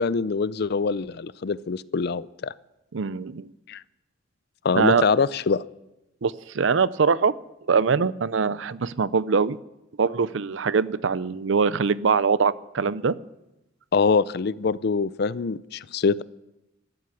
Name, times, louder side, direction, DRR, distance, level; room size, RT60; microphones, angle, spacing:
voice 1, 0.0-2.5 3.7-3.8 4.6-5.6 13.9-16.2, left 5 dB, 55° left, 18 dB, 0.5 m, -24 dB
voice 2, 2.9-3.5 4.8-5.0 6.2-7.3 7.7-9.6 10.0-13.2, right 5 dB, 75° right, 18 dB, 0.6 m, -23 dB
12.5 x 12.5 x 8.3 m, 0.94 s
head